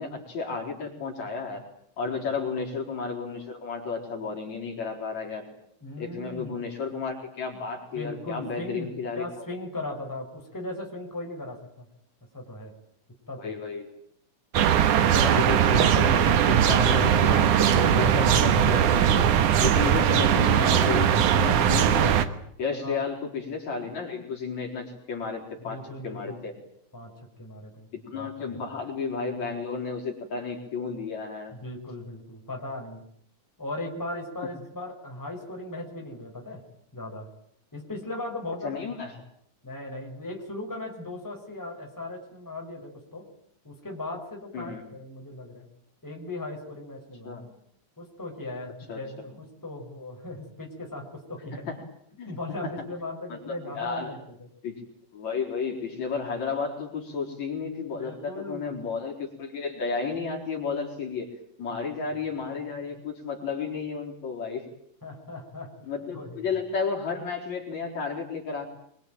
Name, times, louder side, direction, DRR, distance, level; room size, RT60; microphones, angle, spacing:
voice 1, 0.0-1.6 2.0-5.5 6.0-9.4 13.4-13.9 15.1-22.2 22.6-26.5 27.9-31.5 38.6-39.1 44.5-44.8 47.2-47.5 48.9-49.0 51.7-51.8 52.1-52.3 53.3-54.2 54.6-54.8 55.1-61.3 61.6-64.7 65.9-68.7, left 5 dB, 55° left, 1 dB, 5.7 m, -32 dB
voice 2, 5.8-6.5 7.9-11.9 12.3-12.7 13.3-13.6 14.9-15.3 19.8-20.2 22.8-23.0 25.6-26.4 26.9-27.9 28.1-28.6 31.5-33.0 33.6-36.6 36.9-37.3 37.7-38.8 39.6-43.3 43.6-45.6 46.0-47.4 48.0-51.7 52.3-54.5 58.0-58.8 61.7-61.8 65.0-65.7 66.1-66.5, left 2 dB, 5° left, 1 dB, 5.0 m, -38 dB
sound 1, 14.5-22.3, right 9 dB, 70° right, 2.7 m, -20 dB
24.5 x 24.0 x 9.1 m, 0.66 s
omnidirectional pair, 3.8 m